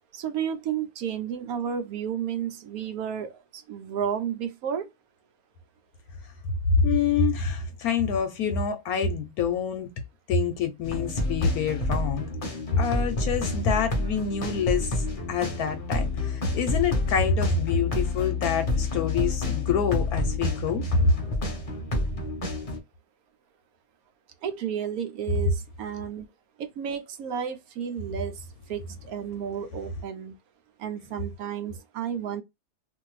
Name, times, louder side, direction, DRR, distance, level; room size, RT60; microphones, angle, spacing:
voice 1, 0.1-4.9 24.4-26.3 26.6-30.4 30.8-32.4, right 8 dB, 70° right, 1.0 m, -32 dB
voice 2, 6.8-9.9 10.3-12.3 12.7-21.1, left 5 dB, 75° left, 1.1 m, -26 dB
sound 1, 10.8-22.8, left 2 dB, 35° left, 0.6 m, -29 dB
2.6 x 2.5 x 3.1 m
omnidirectional pair, 1.7 m